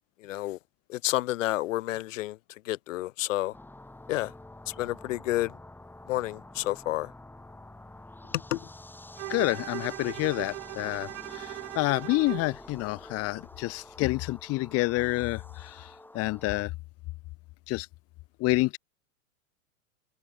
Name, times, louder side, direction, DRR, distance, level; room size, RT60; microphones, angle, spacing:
voice 1, 0.2-0.6 0.9-2.4 2.6-3.5 4.1-4.3 4.7-5.5 6.1-7.1 8.5-8.6, left 16 dB, 65° left, 1.3 m, -30 dB
sound 1, 3.5-16.6, left 2 dB, 5° left, 3.7 m, -48 dB
Bowed string instrument, 9.2-12.6, right 20 dB, 60° right, 1.3 m, -39 dB
voice 2, 9.3-15.9 16.1-16.7 17.7-17.9 18.4-18.8, left 21 dB, 35° left, 1.1 m, -28 dB
hypercardioid pair, 115°, 41 cm